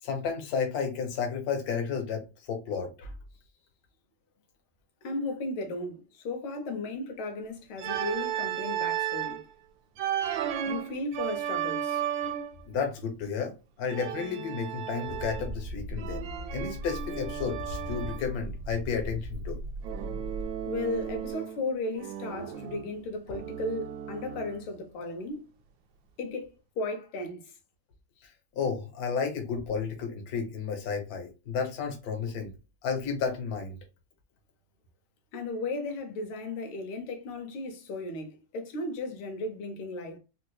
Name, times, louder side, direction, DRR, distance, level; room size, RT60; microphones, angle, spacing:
voice 1, 0.0-3.1 12.7-13.5 13.8-19.6 23.3-23.4 28.5-32.5 32.8-33.8, left 6 dB, 55° left, 1.3 m, -32 dB
voice 2, 5.0-9.4 10.7-12.0 20.7-25.5 26.2-26.5 26.8-27.5 35.3-40.2, left 2 dB, 90° left, 1.8 m, -35 dB
Organ, 7.8-9.4 10.0-12.6 13.9-15.6 16.0-18.3 19.8-21.6 22.0-24.7, right 10 dB, 75° right, 1.2 m, -34 dB
sound 1, 15.0-21.3, equal, 35° right, 0.5 m, -38 dB
4.2 x 2.6 x 2.2 m
omnidirectional pair, 2.2 m